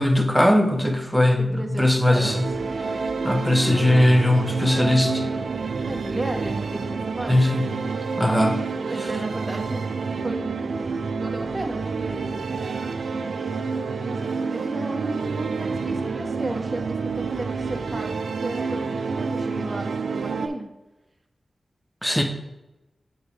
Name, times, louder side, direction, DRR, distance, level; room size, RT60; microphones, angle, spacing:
voice 1, 0.0-2.5 3.2-5.2 7.3-7.7 8.1-8.6 22.0-22.2, left 1 dB, 5° left, 4 dB, 1.1 m, -19 dB
voice 2, 1.4-2.3 5.9-7.3 8.9-9.9 10.2-10.5 11.2-12.4 14.0-18.1 18.4-20.7, right 1 dB, 30° right, 2 dB, 1.3 m, -33 dB
sound 1, 2.2-20.5, right 4 dB, 80° right, 0.5 m, -28 dB
8.0 x 4.2 x 3.5 m, 0.99 s
cardioid pair, 40°, 0 cm